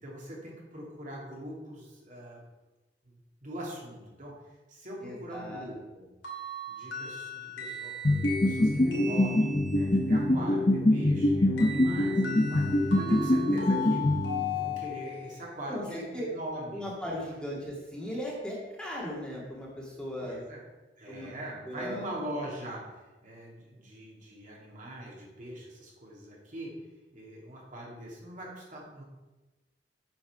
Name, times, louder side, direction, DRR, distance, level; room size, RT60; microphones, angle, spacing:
voice 1, 0.0-2.4 3.0-3.1 3.4-4.3 4.7-6.1 6.7-14.0 14.5-16.9 19.9-20.6 21.0-26.7 27.1-29.0, right 1 dB, 45° right, -3 dB, 2.8 m, -42 dB
voice 2, 5.0-5.7 15.7-16.3 16.7-20.4 21.1-21.3 21.7-22.1, equal, 5° left, -4 dB, 2.0 m, -37 dB
sound 1, 6.2-10.0 11.6-15.3, left 4 dB, 85° left, 2.8 m, -38 dB
sound 2, 8.0-14.7, left 1 dB, 35° left, 0.7 m, -25 dB
8.7 x 6.0 x 5.9 m, 1.1 s
head